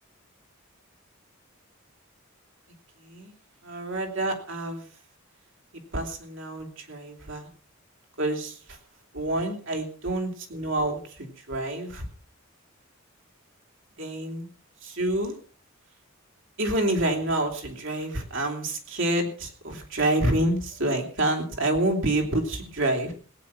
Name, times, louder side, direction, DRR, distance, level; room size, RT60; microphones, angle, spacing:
voice 1, 3.6-4.8 5.9-7.5 8.2-8.5 9.1-12.0 14.0-14.5 14.8-15.3 16.6-23.1, right 1 dB, 60° right, 3 dB, 3.2 m, -27 dB
17.5 x 9.1 x 5.8 m, 0.41 s
head